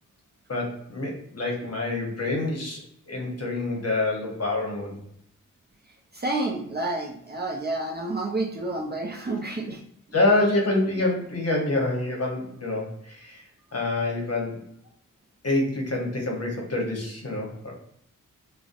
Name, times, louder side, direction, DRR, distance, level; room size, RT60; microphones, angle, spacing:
voice 1, 0.5-2.8 3.1-5.0 10.1-13.4 13.7-14.6 15.4-17.7, left 2 dB, 45° left, 0 dB, 0.9 m, -26 dB
voice 2, 6.1-9.8, right 2 dB, 30° right, 0 dB, 0.5 m, -29 dB
2.5 x 2.0 x 2.5 m, 0.71 s
cardioid pair, 50°, 34 cm